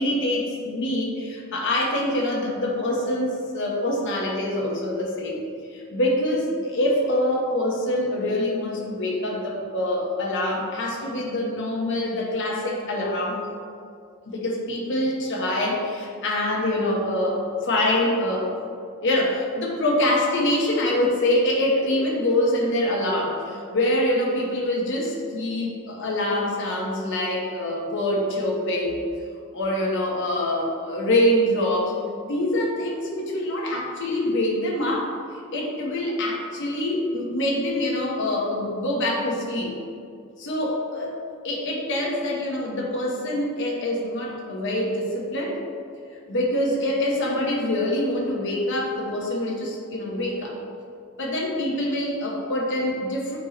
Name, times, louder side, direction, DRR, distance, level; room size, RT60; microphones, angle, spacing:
voice 1, 0.0-5.4 5.7-13.4 14.3-18.5 19.0-29.0 29.5-31.9 32.2-35.1 35.5-39.7 40.4-41.1 41.4-45.6 46.3-50.6 51.2-53.4, left 1 dB, 55° left, -2 dB, 1.1 m, -25 dB
7.8 x 4.2 x 3.0 m, 2.4 s
head